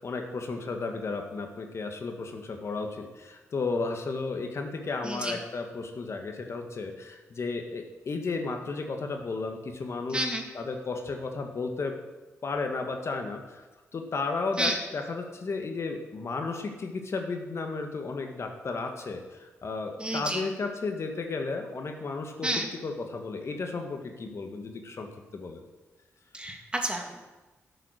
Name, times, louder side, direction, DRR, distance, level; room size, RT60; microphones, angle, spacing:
voice 1, 0.0-10.3 10.5-12.0 12.4-13.6 13.9-22.5 22.8-25.1 25.3-25.6, left 3 dB, 55° left, 4 dB, 1.5 m, -33 dB
voice 2, 5.0-5.4 10.1-10.4 14.6-14.8 20.0-20.4 22.4-22.7 26.3-27.3, right 1 dB, 20° right, 2 dB, 2.5 m, -30 dB
11.0 x 6.9 x 6.5 m, 1.2 s
supercardioid pair, 50°, 5 cm